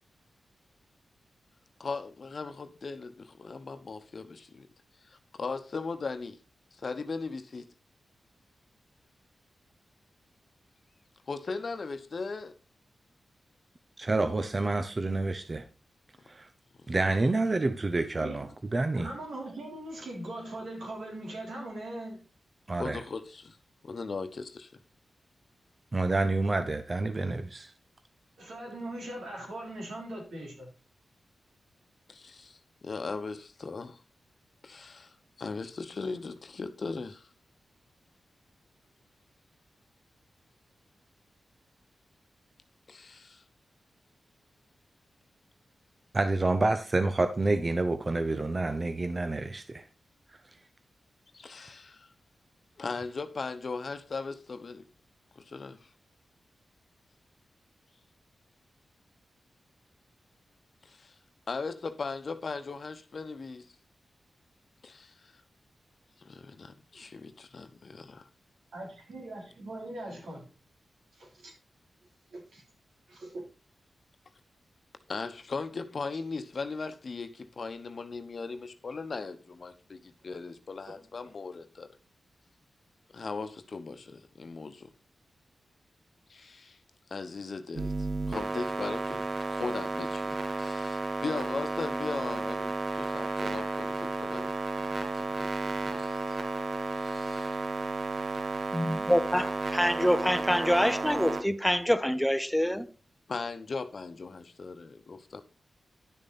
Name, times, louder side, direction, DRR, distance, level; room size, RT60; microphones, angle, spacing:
voice 1, 1.8-4.7 5.0-6.4 6.8-7.7 11.3-12.5 22.8-23.6 23.8-24.7 32.1-34.0 34.6-37.3 42.9-43.4 51.3-52.1 52.8-54.8 55.4-55.9 60.8-61.1 61.5-63.7 64.8-65.3 66.2-68.3 75.1-81.9 83.1-84.9 86.3-86.8 87.1-87.9 88.3-94.5 94.8-96.4 96.9-97.6 103.3-105.4, left 4 dB, 60° left, 1.0 m, -38 dB
voice 2, 14.0-15.6 16.3-16.5 16.9-19.1 22.7-23.0 25.9-27.7 46.1-49.8, right 2 dB, 40° right, 0.9 m, -28 dB
voice 3, 18.2-18.5 18.9-22.2 28.4-30.7 68.7-70.5 71.2-71.5 72.3-72.6 73.1-73.4 80.9-81.0, right 1 dB, 85° right, 4.0 m, -40 dB
sound 1, 87.8-101.4, right 3 dB, 65° right, 1.1 m, -33 dB
voice 4, 98.7-102.9, equal, 5° left, 0.8 m, -26 dB
10.5 x 6.5 x 4.2 m
cardioid pair, 50°, 0 cm